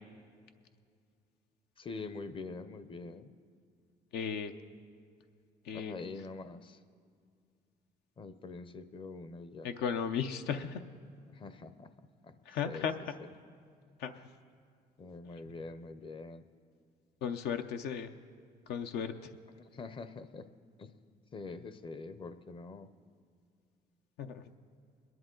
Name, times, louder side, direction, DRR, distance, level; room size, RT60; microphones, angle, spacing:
voice 1, 1.8-3.3 5.7-6.8 8.2-9.7 11.3-11.9 12.2-12.3 12.6-12.9 15.0-16.4 19.6-20.5 20.8-20.9 21.3-22.9, left 3 dB, 30° left, 12 dB, 0.6 m, -45 dB
voice 2, 4.1-4.5 5.6-6.0 9.6-10.8 12.5-12.9 14.0-14.3 17.2-18.1 18.7-19.3 24.2-24.4, left 7 dB, 75° left, 7 dB, 0.6 m, -35 dB
21.5 x 10.5 x 3.8 m, 2.2 s
cardioid pair, 110°, 17 cm